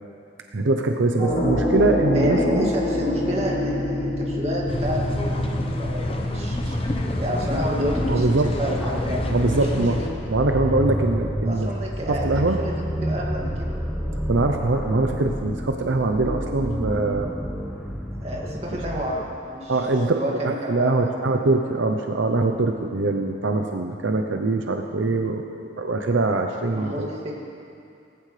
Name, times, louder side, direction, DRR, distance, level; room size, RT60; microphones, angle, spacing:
voice 1, 0.5-2.7 6.7-6.8 8.1-8.5 9.3-10.0 10.3-11.7 12.1-12.6 14.3-17.3 19.7-27.1, right 2 dB, 80° right, 4 dB, 0.7 m, -23 dB
sound 1, 1.2-7.0, left 1 dB, 55° left, 2.9 m, -26 dB
voice 2, 2.1-9.2 9.5-10.1 11.5-12.3 12.6-13.7 18.2-21.1 26.7-27.3, equal, 30° right, -3 dB, 2.2 m, -30 dB
sound 2, 4.7-10.1, left 1 dB, 30° left, 0.9 m, -28 dB
sound 3, 6.5-19.0, equal, ahead, 1.0 m, -30 dB
18.5 x 15.0 x 3.3 m, 2.5 s
head